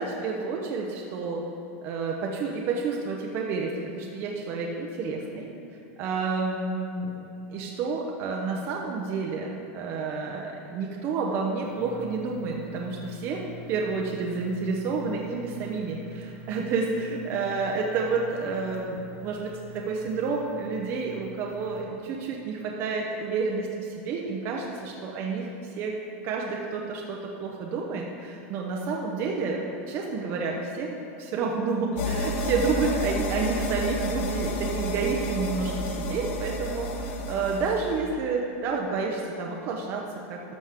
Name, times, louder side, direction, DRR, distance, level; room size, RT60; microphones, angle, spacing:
voice 1, 0.0-1.4 1.8-5.5 6.0-13.4 13.7-25.5 25.8-26.0 26.2-40.5, right 4 dB, 30° right, -1 dB, 0.7 m, -30 dB
sound 1, 11.6-21.8, right 1 dB, 85° right, 2.0 m, -46 dB
sound 2, 32.0-38.0, left 1 dB, 65° left, 1.0 m, -30 dB
13.0 x 6.2 x 3.6 m, 3.0 s
supercardioid pair, 165°, 7 cm